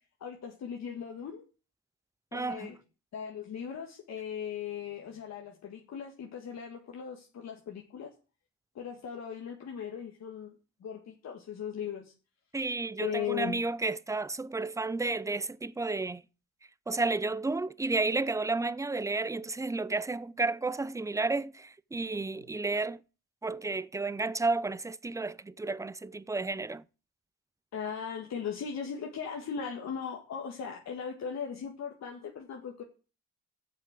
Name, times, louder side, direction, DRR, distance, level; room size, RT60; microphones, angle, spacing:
voice 1, 0.2-1.4 2.3-2.8 3.1-8.1 8.7-10.5 10.8-12.1 13.0-13.6 27.7-32.8, left 7 dB, 60° left, 1.8 m, -38 dB
voice 2, 2.3-2.8 12.5-16.2 16.9-23.0 23.4-26.8, right 3 dB, 10° right, 0.5 m, -32 dB
7.8 x 6.6 x 7.9 m
cardioid pair, 90°, 30 cm